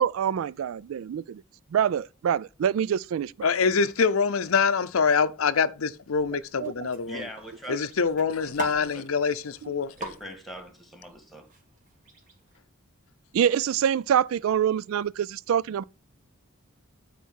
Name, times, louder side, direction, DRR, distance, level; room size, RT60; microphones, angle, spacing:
voice 1, 0.0-1.4 1.7-3.5 6.6-6.9 7.7-7.8 9.6-9.7 13.3-15.8, right 9 dB, 75° right, 0.3 m, -26 dB
voice 2, 3.4-7.2 7.7-9.9, left 5 dB, 85° left, 0.6 m, -25 dB
sound 1, 6.1-12.6, right 3 dB, 40° right, 2.2 m, -43 dB
voice 3, 7.1-7.9 8.3-9.1 10.0-11.5, equal, ahead, 1.9 m, -42 dB
9.2 x 4.2 x 6.2 m
head